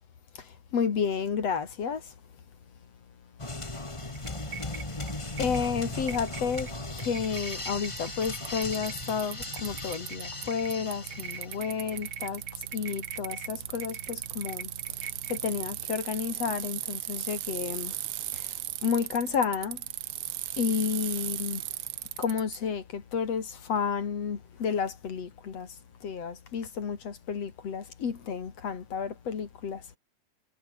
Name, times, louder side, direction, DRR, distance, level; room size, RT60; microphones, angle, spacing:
voice 1, 0.4-2.1 4.6-4.8 5.4-14.7 15.0-17.9 18.3-18.5 18.8-19.8 20.6-21.6 22.2-25.7 26.0-30.0, left 6 dB, 55° left, 3.5 m, -31 dB
sound 1, 3.4-11.9, left 2 dB, 15° left, 1.2 m, -37 dB
sound 2, 4.0-15.9, right 7 dB, 50° right, 3.1 m, -44 dB
Bicycle, 7.0-7.1 8.0-8.1 8.2-10.4 10.7-22.6, right 13 dB, 85° right, 1.1 m, -37 dB
omnidirectional pair, 3.5 m